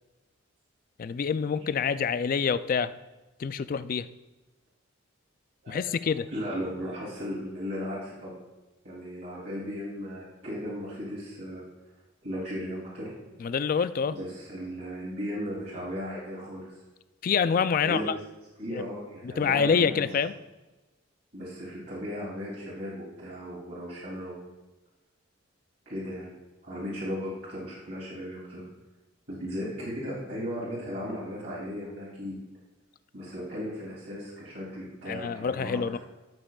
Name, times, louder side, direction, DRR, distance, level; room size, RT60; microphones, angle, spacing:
voice 1, 1.0-2.9 3.4-4.1 5.7-6.3 13.4-14.2 17.2-18.1 18.7-18.8 19.2-20.3 35.1-36.0, left 6 dB, 45° left, 14 dB, 0.3 m, -26 dB
voice 2, 1.6-1.9 5.6-5.9 6.3-8.3 8.8-11.6 12.2-13.5 14.1-16.8 17.8-18.1 18.6-20.0 21.3-24.4 25.8-26.3 26.6-28.6 29.3-32.4 33.1-36.0, equal, 60° right, -8 dB, 2.9 m, -36 dB
12.5 x 7.5 x 2.4 m, 1.1 s
head